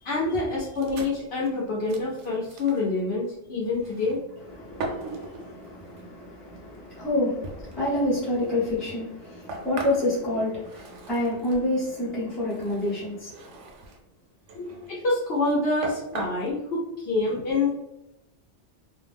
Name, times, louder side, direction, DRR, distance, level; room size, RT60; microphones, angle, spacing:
voice 1, 0.0-4.2 14.9-17.7, left 3 dB, 65° left, -4 dB, 0.8 m, -26 dB
sound 1, 0.8-2.9 3.7-4.4 4.8-6.0 6.8-6.9 7.4-11.7 12.4-14.0 14.4-15.0 15.5-15.6 15.8-16.5, right 2 dB, 85° right, 0.9 m, -39 dB
voice 2, 4.4-13.6 14.5-14.7, left 1 dB, ahead, -9 dB, 0.6 m, -28 dB
2.4 x 2.1 x 3.2 m, 0.89 s
omnidirectional pair, 1.2 m